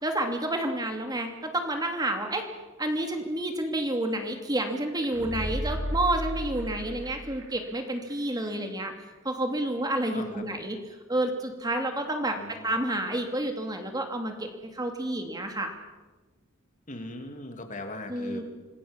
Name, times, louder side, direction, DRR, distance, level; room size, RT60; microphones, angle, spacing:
voice 1, 0.0-2.5 2.8-8.9 9.2-10.8 11.1-15.7 18.1-18.4, right 1 dB, 20° right, 4 dB, 2.7 m, -29 dB
sound 1, 4.9-7.8 8.1-8.2, equal, 65° right, 4.1 m, -34 dB
voice 2, 10.1-10.5 12.3-12.7 16.9-18.4, left 1 dB, 40° left, 5 dB, 3.0 m, -39 dB
26.5 x 21.0 x 7.4 m, 1.2 s
head